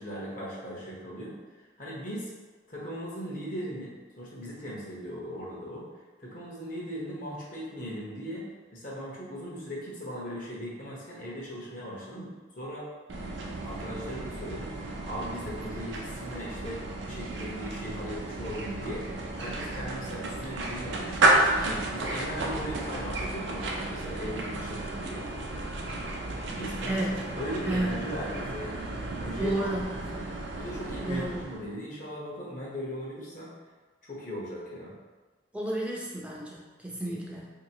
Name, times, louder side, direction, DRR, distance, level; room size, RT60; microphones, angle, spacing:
voice 1, 0.0-2.3 2.7-5.9 6.2-12.9 13.6-19.1 19.3-25.2 26.5-27.0 27.4-28.9 29.2-29.7 30.1-30.2 30.6-33.5 34.0-34.9 37.0-37.2, equal, 45° left, -5 dB, 1.0 m, -38 dB
sound 1, 13.1-31.7, right 2 dB, 75° right, 0.6 m, -32 dB
voice 2, 26.9-27.2 27.7-28.0 29.4-29.9 31.0-31.4 35.5-37.5, right 1 dB, 5° right, -3 dB, 0.5 m, -31 dB
4.1 x 2.8 x 2.8 m, 1.3 s
head